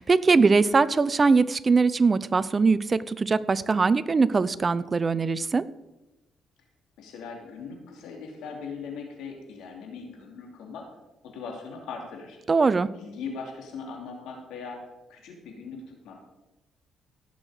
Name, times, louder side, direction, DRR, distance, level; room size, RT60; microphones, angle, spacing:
voice 1, 0.0-5.7 12.5-12.9, right 4 dB, 30° right, 16 dB, 0.5 m, -21 dB
voice 2, 7.0-10.8 11.2-12.4 12.9-16.2, left 5 dB, 85° left, 1 dB, 2.8 m, -40 dB
17.0 x 6.4 x 5.0 m, 1.0 s
cardioid pair, 90°, 0 cm